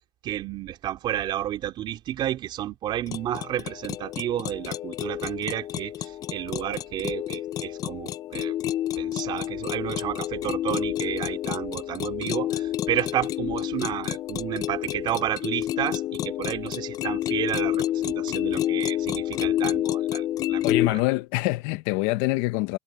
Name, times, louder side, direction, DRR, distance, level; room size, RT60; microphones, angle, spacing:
voice 1, 0.2-8.5 9.0-21.0, right 12 dB, 35° right, 3.6 m, -31 dB
sound 1, 3.1-20.9, left 12 dB, 30° left, 0.3 m, -29 dB
voice 2, 20.6-22.8, left 21 dB, 60° left, 0.8 m, -25 dB
cardioid pair, 155°, 13 cm